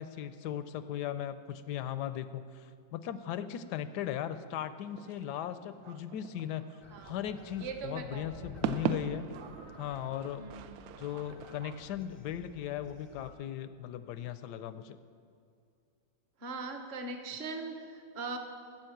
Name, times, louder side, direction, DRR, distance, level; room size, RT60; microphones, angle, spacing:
voice 1, 0.0-6.6 7.0-9.3 9.8-10.4 11.0-15.0, left 10 dB, 75° left, 12 dB, 1.0 m, -38 dB
sound 1, 4.8-12.0, right 9 dB, 75° right, 0.8 m, -41 dB
sound 2, 6.8-13.3, left 1 dB, 25° left, 0.5 m, -54 dB
voice 2, 6.9-8.5 10.4-10.7 16.4-18.4, right 3 dB, 40° right, 5 dB, 1.1 m, -41 dB
12.0 x 7.6 x 7.8 m, 2.4 s
omnidirectional pair, 2.1 m